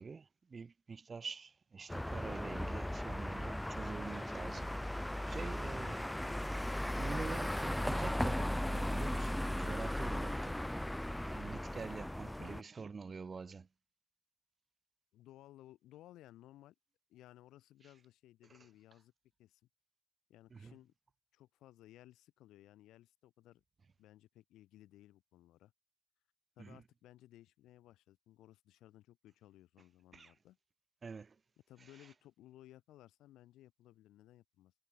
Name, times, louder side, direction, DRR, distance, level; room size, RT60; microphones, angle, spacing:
voice 1, 0.0-4.7 5.2-6.0 7.0-10.6 11.2-13.7 20.5-20.7 26.6-26.8 30.1-30.3 31.0-31.4, right 5 dB, 40° right, 2.7 m, -46 dB
sound 1, 1.9-12.6, left 1 dB, 5° left, 1.1 m, -37 dB
voice 2, 12.2-12.7 15.1-16.8 17.1-19.1 19.4-19.6 20.3-20.9 21.3-23.6 24.0-25.7 26.6-30.6 31.7-34.7, left 14 dB, 70° left, 5.2 m, -59 dB
hypercardioid pair, 45°, 0 cm